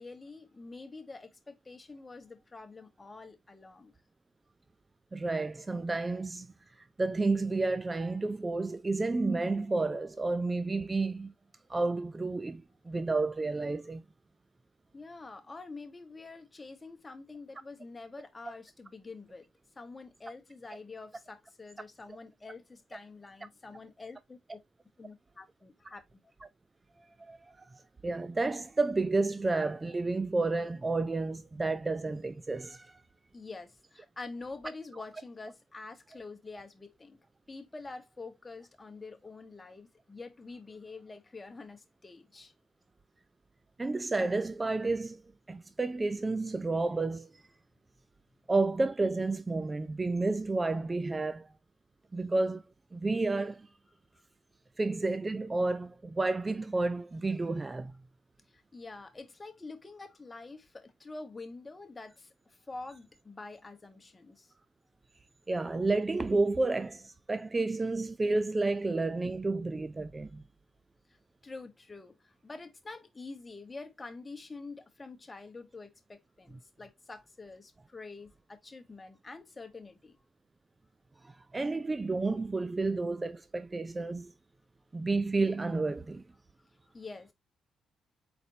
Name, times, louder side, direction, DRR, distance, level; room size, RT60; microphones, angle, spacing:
voice 1, 0.0-3.9 14.9-19.5 19.7-24.6 25.0-26.2 33.3-37.2 37.5-42.5 58.5-64.5 71.4-80.2 86.9-87.3, left 3 dB, 25° left, 1.1 m, -46 dB
voice 2, 5.1-6.5 7.0-11.3 11.7-14.0 27.2-27.7 28.0-33.0 43.8-45.2 45.5-47.4 48.5-51.5 52.1-52.6 52.9-53.7 54.8-57.9 65.5-70.4 81.2-84.3 84.9-86.2, right 3 dB, 20° right, 0.4 m, -31 dB
4.2 x 4.2 x 2.7 m
cardioid pair, 90°, 0 cm